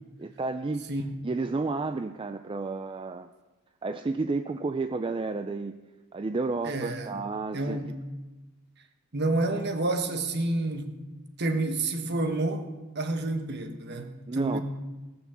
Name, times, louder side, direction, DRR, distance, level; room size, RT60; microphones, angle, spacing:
voice 1, 0.2-0.9 1.2-3.3 3.8-5.7 6.1-7.8 14.3-14.6, right 3 dB, 25° right, 0.3 m, -31 dB
voice 2, 6.6-7.2 7.5-8.0 9.1-10.9 11.4-12.7 12.9-14.6, right 2 dB, 45° right, 1.2 m, -29 dB
18.5 x 6.1 x 7.3 m
head